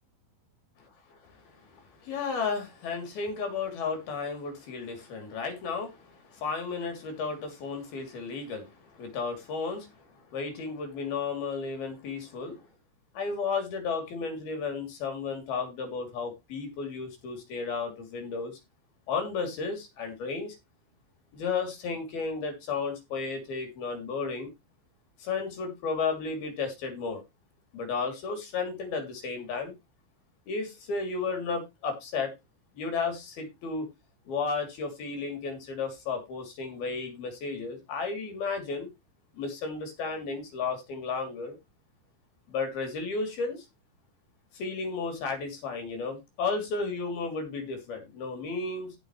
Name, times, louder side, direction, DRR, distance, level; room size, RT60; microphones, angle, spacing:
voice 1, 0.8-12.7 13.1-18.6 19.1-20.6 21.3-24.5 25.2-27.2 27.7-29.7 30.5-32.3 32.7-33.9 34.3-38.9 39.3-41.6 42.5-43.7 44.5-49.0, left 4 dB, 50° left, 4.4 m, -33 dB
16.0 x 6.2 x 3.1 m
omnidirectional pair, 5.9 m